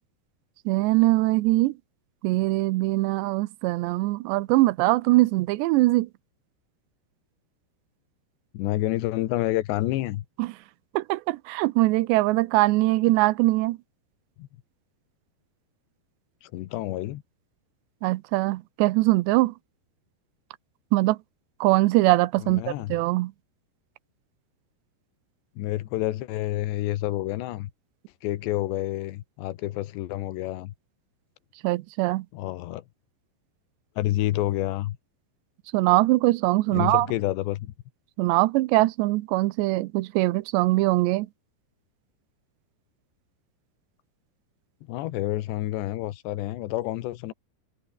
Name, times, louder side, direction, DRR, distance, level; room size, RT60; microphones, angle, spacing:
voice 1, 0.7-1.7 2.2-6.1 10.4-10.5 10.9-13.8 18.0-19.5 20.9-21.2 21.6-23.3 31.6-32.3 35.7-37.1 38.2-41.3, right 20 dB, 85° right, 3.0 m, -22 dB
voice 2, 8.5-10.3 14.4-14.5 16.4-17.2 22.4-23.0 25.6-27.7 28.2-30.7 32.3-32.8 34.0-35.0 36.7-37.7 44.9-47.3, left 15 dB, 80° left, 3.5 m, -29 dB
omnidirectional pair, 5.0 m